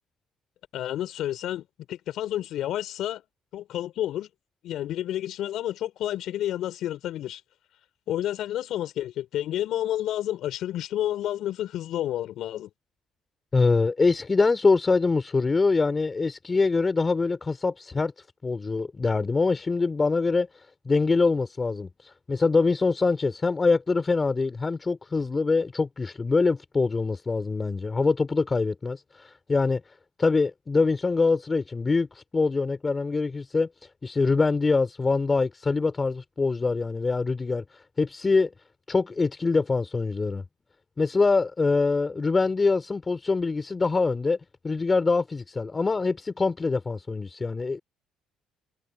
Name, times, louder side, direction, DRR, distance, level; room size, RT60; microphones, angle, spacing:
voice 1, 0.7-3.2 3.5-4.3 4.6-7.4 8.1-12.7, left 12 dB, 70° left, 4.3 m, -30 dB
voice 2, 13.5-18.1 18.4-29.8 30.2-33.7 34.0-38.5 38.9-40.4 41.0-44.4 44.6-47.8, left 4 dB, 25° left, 4.9 m, -24 dB
cardioid pair, 85°, 0 cm